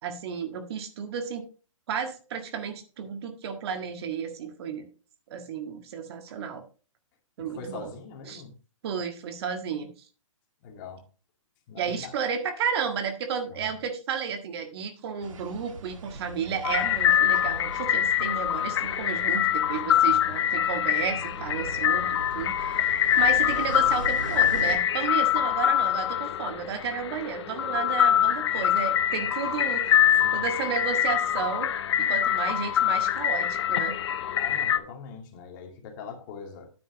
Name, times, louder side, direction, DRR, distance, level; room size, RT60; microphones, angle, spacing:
voice 1, 0.0-1.4 1.9-4.9 5.3-6.6 7.4-7.9 8.3-8.4 8.8-9.9 11.8-30.0 30.3-31.7 32.0-34.0, right 7 dB, 50° right, 1.7 m, -32 dB
voice 2, 7.4-8.5 10.6-11.0 11.7-12.1 13.6-13.8 20.0-20.3 30.2-30.5 34.3-36.7, left 5 dB, 40° left, 2.4 m, -42 dB
sound 1, 15.2-24.8, right 3 dB, 75° right, 1.4 m, -41 dB
sound 2, 16.6-34.8, left 10 dB, 55° left, 0.9 m, -24 dB
9.6 x 8.6 x 3.0 m
hypercardioid pair, 130°, 17 cm